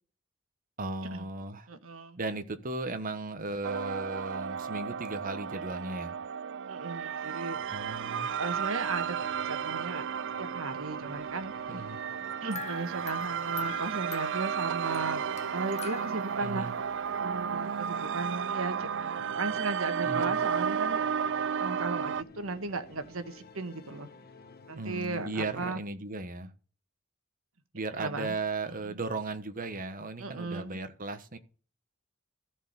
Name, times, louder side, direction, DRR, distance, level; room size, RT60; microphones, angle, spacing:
voice 1, 0.8-1.7 2.2-6.2 7.7-8.3 11.7-12.0 16.4-16.7 20.0-20.3 24.7-26.5 27.7-31.4, right 3 dB, 40° right, 1.3 m, -36 dB
voice 2, 1.7-2.2 6.7-7.6 8.4-9.2 9.4-10.1 10.4-11.5 12.4-15.2 15.5-16.7 17.2-24.1 24.7-25.8 28.0-28.3 28.8-29.0 30.2-30.8, right 3 dB, 80° right, 1.5 m, -36 dB
sound 1, 3.6-22.2, right 7 dB, 60° right, 0.4 m, -33 dB
sound 2, 7.5-25.8, left 3 dB, 50° left, 1.3 m, -53 dB
sound 3, 12.5-16.6, left 7 dB, 30° left, 0.6 m, -45 dB
14.0 x 4.8 x 8.1 m
head